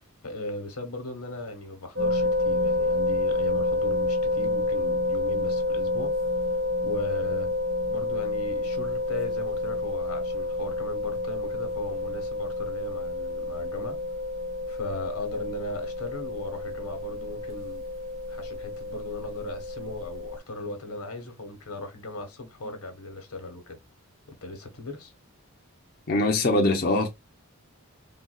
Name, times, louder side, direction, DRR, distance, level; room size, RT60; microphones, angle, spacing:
voice 1, 0.2-6.1 6.8-7.5 7.9-14.0 14.7-17.9 18.3-23.8 24.3-25.1, left 2 dB, 90° left, 1.1 m, -38 dB
sound 1, 2.0-20.4, left 2 dB, 65° right, 1.0 m, -29 dB
voice 2, 26.1-27.1, left 2 dB, 45° left, 0.6 m, -22 dB
3.8 x 2.3 x 2.2 m
head